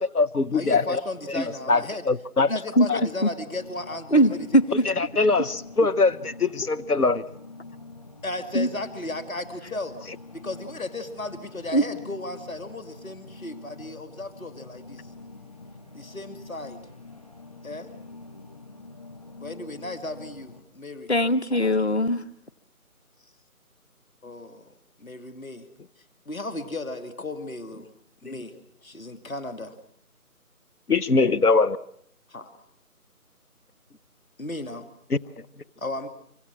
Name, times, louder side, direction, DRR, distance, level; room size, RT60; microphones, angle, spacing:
voice 1, 0.0-1.0 1.3-2.5 2.9-3.1 4.8-7.2 28.2-28.3 30.9-31.8 35.1-35.2, left 3 dB, 80° left, 14 dB, 1.2 m, -22 dB
voice 2, 0.5-2.0 2.4-4.5 4.8-4.9 8.2-10.0 10.3-15.1 15.9-16.8 17.6-17.9 19.4-21.1 24.2-24.6 25.0-25.7 26.3-27.9 28.2-28.5 28.8-29.7 32.3-32.5 34.4-34.9 35.8-36.1, left 2 dB, 65° left, 10 dB, 2.5 m, -35 dB
sound 1, 3.5-20.6, left 3 dB, 25° left, 1.6 m, -45 dB
voice 3, 4.1-4.6 8.5-8.7 11.7-11.8 21.1-22.2, equal, 45° left, 12 dB, 1.1 m, -20 dB
25.5 x 24.5 x 6.1 m, 0.69 s
figure-of-eight pair, 170°, 45 cm